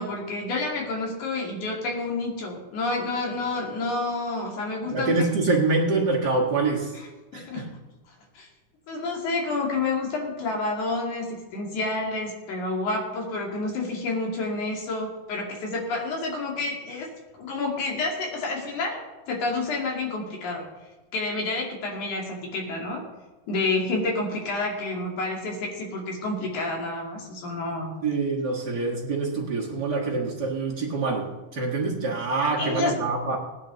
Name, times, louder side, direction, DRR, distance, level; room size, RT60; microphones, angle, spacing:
voice 1, 0.0-5.2 7.3-7.7 8.4-8.5 8.9-17.1 17.3-19.0 19.3-20.7 21.1-23.0 23.5-27.9 32.6-33.0, left 3 dB, 65° left, -1 dB, 3.8 m, -29 dB
voice 2, 4.8-6.9 7.3-7.7 28.0-33.4, right 3 dB, 40° right, -3 dB, 1.5 m, -25 dB
18.0 x 10.0 x 4.0 m, 1.1 s
omnidirectional pair, 3.8 m